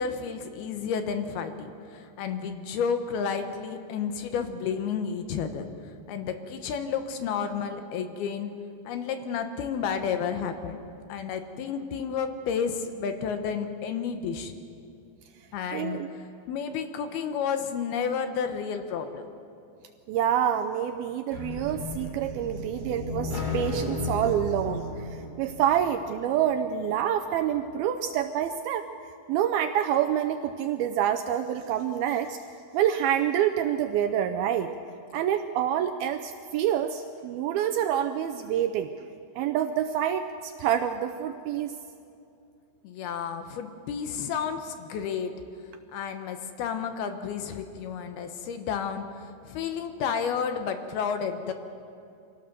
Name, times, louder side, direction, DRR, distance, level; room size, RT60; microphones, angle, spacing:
voice 1, 0.0-5.7 6.1-8.5 8.9-10.8 11.1-14.5 15.5-16.0 16.5-19.3 42.8-45.3 45.9-51.5, left 6 dB, 70° left, 7 dB, 2.7 m, -31 dB
voice 2, 15.7-16.1 20.1-28.9 29.3-32.4 32.7-34.7 35.1-39.1 39.4-41.7, right 10 dB, 80° right, 7 dB, 2.2 m, -27 dB
sound 1, 21.3-26.2, left 2 dB, 40° left, 4.5 m, -34 dB
25.0 x 17.5 x 6.7 m, 2.6 s
omnidirectional pair, 4.9 m